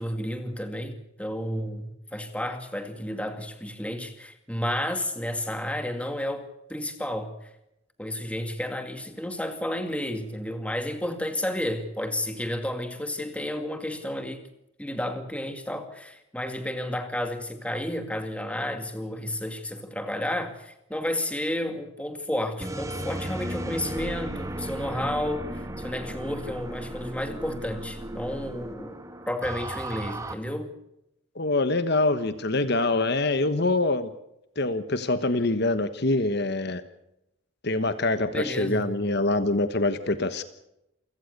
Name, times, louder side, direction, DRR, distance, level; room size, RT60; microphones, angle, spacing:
voice 1, 0.0-7.5 8.0-14.4 14.8-29.0 29.3-30.7 38.3-38.9, left 1 dB, 5° left, 7 dB, 2.2 m, -31 dB
sound 1, 22.6-30.3, right 1 dB, 15° right, 1.8 m, -35 dB
voice 2, 31.3-34.1 34.6-36.8 37.6-40.4, left 2 dB, 50° left, 11 dB, 1.3 m, -25 dB
28.0 x 17.0 x 6.7 m, 0.86 s
head